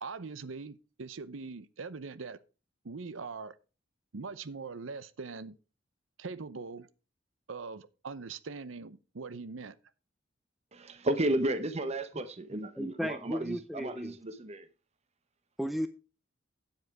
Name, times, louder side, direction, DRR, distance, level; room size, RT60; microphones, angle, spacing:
voice 1, 0.0-2.4 2.8-3.5 4.1-5.6 6.2-6.9 7.5-9.8, right 4 dB, 85° right, 0.7 m, -42 dB
voice 2, 10.7-14.7, right 1 dB, 35° right, 0.9 m, -33 dB
voice 3, 12.8-14.2 15.6-15.9, equal, ahead, 0.5 m, -34 dB
9.2 x 7.9 x 4.7 m
head